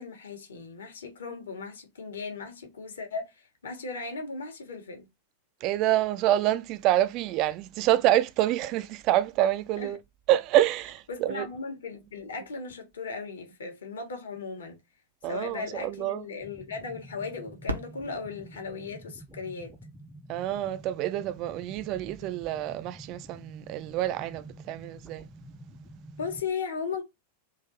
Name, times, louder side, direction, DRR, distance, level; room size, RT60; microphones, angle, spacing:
voice 1, 0.0-5.1 9.8-9.9 11.1-14.8 15.2-19.7 26.2-27.0, left 4 dB, 65° left, 1.3 m, -37 dB
voice 2, 5.6-10.0 10.3-11.5 15.2-16.2 20.3-25.2, right 13 dB, 40° right, 0.4 m, -27 dB
sound 1, 16.4-26.4, right 1 dB, ahead, 0.6 m, -48 dB
Fireworks, 17.6-20.4 21.1-21.2 21.9-22.3 24.2-24.3, equal, 80° right, 0.8 m, -40 dB
3.9 x 2.6 x 2.7 m
figure-of-eight pair, 90°, 0 cm